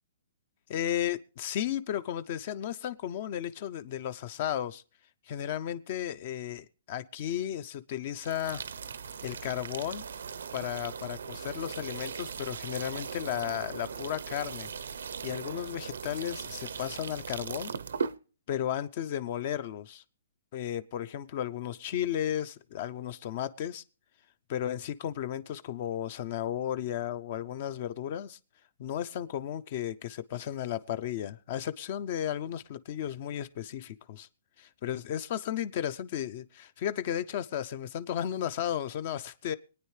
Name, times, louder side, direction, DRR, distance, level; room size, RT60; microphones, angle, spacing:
voice 1, 0.7-4.8 5.3-8.6 9.2-10.0 10.5-14.7 15.2-17.7 18.5-20.0 20.5-23.8 24.5-28.4 28.8-34.3 34.6-39.6, left 10 dB, 40° left, 15 dB, 0.6 m, -34 dB
sound 1, 8.2-18.2, right 6 dB, 85° right, 0.7 m, -39 dB
25.0 x 9.3 x 3.2 m, 0.39 s
hypercardioid pair, 160°, 0 cm